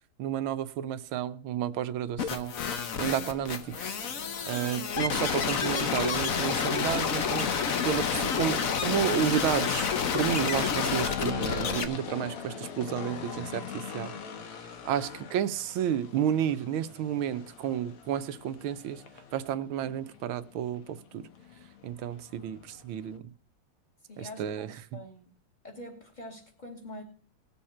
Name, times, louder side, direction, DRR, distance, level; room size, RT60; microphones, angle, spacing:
voice 1, 0.2-2.5 3.0-3.9 4.5-7.5 7.8-9.9 10.1-14.1 14.8-19.0 19.3-21.0 21.8-23.3 24.2-24.7, right 10 dB, 75° right, 1.5 m, -31 dB
sound 1, 2.2-11.8, left 6 dB, 50° left, 1.1 m, -29 dB
sound 2, 3.3-23.2, left 7 dB, 85° left, 2.3 m, -42 dB
voice 2, 24.1-25.2 25.6-27.0, left 1 dB, 20° left, 2.8 m, -45 dB
19.5 x 7.1 x 4.3 m
omnidirectional pair, 2.4 m